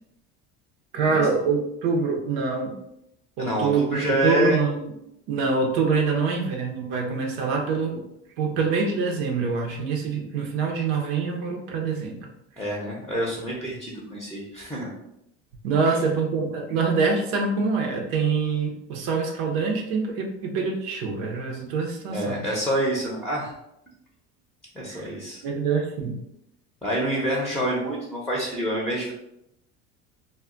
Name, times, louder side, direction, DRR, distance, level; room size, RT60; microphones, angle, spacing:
voice 1, 0.9-2.7 3.4-4.9 5.3-8.0 8.4-12.3 15.6-22.5 24.9-25.1 25.4-26.2, right 4 dB, 85° right, 1 dB, 0.6 m, -25 dB
voice 2, 3.4-4.6 12.6-14.9 22.1-23.5 24.7-25.4 26.8-29.1, right 1 dB, 5° left, -4 dB, 0.6 m, -27 dB
2.2 x 2.1 x 3.6 m, 0.81 s
supercardioid pair, 100°, 30 cm